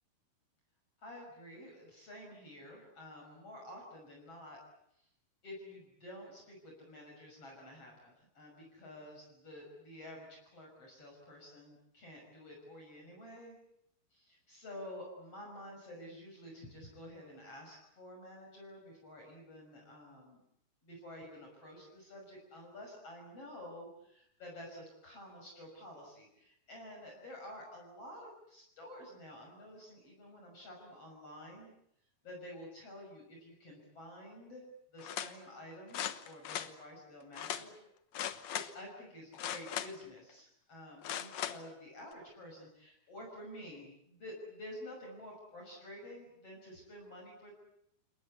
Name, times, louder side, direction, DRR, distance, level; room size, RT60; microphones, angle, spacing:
voice 1, 1.0-4.6 5.4-13.6 14.1-20.4 20.8-31.7 32.2-34.6 34.9-37.7 38.5-47.5, left 1 dB, 40° left, 0 dB, 6.9 m, -50 dB
sound 1, 35.0-35.3 35.9-36.7 37.4-37.6 38.1-38.7 39.3-40.1 41.0-41.6 42.1-42.2, left 10 dB, 60° left, 1.9 m, -38 dB
29.5 x 19.5 x 8.5 m, 0.75 s
omnidirectional pair, 4.4 m